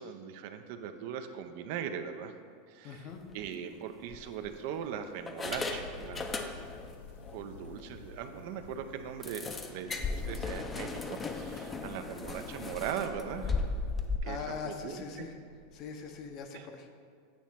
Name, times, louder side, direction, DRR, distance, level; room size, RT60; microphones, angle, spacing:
voice 1, 0.0-2.3 2.7-3.1 3.3-6.3 7.3-13.6 14.2-15.3 16.5-16.7, right 8 dB, 65° right, 8 dB, 0.5 m, -40 dB
voice 2, 2.8-3.2 14.2-15.4 15.7-16.9, left 6 dB, 50° left, 5 dB, 0.8 m, -41 dB
sound 1, 3.2-3.4 4.1-4.8 5.3-6.9 7.2-7.4 7.8-7.9 8.2-8.3 9.2-14.2, left 4 dB, 20° left, 0.5 m, -36 dB
sound 2, 5.4-16.4, left 4 dB, 90° left, 0.4 m, -52 dB
8.5 x 3.1 x 5.7 m, 2.1 s
supercardioid pair, 115°, 0 cm